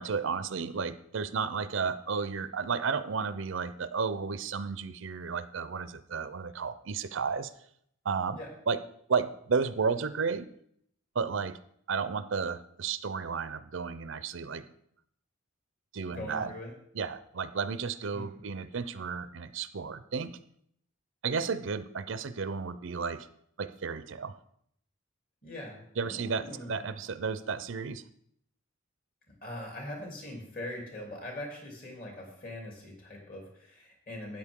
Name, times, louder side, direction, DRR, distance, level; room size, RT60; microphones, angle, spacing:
voice 1, 0.0-7.5 8.0-8.4 8.7-8.8 9.1-10.5 11.2-11.6 11.9-14.6 15.9-16.5 16.9-20.4 21.2-23.3 23.6-24.3 26.0-28.0, right 5 dB, 70° right, 14 dB, 0.5 m, -32 dB
voice 2, 16.1-16.7 18.1-18.4 25.4-26.8 29.4-34.4, left 1 dB, 45° left, -1 dB, 3.2 m, -42 dB
13.0 x 9.1 x 3.6 m, 0.69 s
head